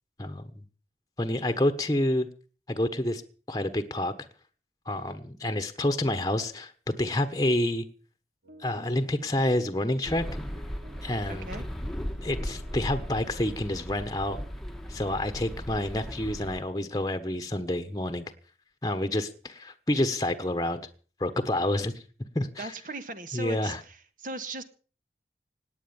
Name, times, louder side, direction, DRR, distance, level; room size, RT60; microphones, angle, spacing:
voice 1, 0.2-0.6 1.2-2.3 2.7-3.2 3.5-4.1 4.8-7.9 8.6-10.2 11.0-11.5 12.2-14.4 14.9-18.2 18.8-20.8 21.2-22.0 22.3-22.7 23.3-23.8, left 1 dB, 20° left, 1.3 m, -28 dB
sound 1, 8.4-11.8 12.0-13.5, right 1 dB, 80° right, 2.9 m, -52 dB
sound 2, 10.0-16.6, equal, ahead, 1.4 m, -37 dB
voice 2, 11.3-11.7 22.6-24.6, right 2 dB, 50° right, 1.7 m, -38 dB
17.5 x 9.9 x 7.1 m
head